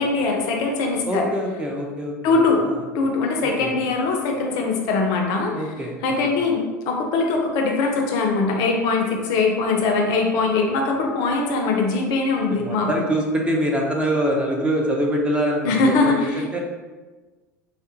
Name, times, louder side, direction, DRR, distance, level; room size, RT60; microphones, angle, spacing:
voice 1, 0.0-1.3 2.2-2.6 2.9-5.6 6.0-12.9 15.6-16.6, left 3 dB, 45° left, 2 dB, 0.5 m, -21 dB
voice 2, 1.1-2.4 2.6-2.8 3.4-3.7 5.5-5.9 6.3-6.4 12.5-16.6, equal, 10° right, -1 dB, 0.5 m, -24 dB
3.6 x 2.0 x 2.6 m, 1.3 s
figure-of-eight pair, 75°, 9 cm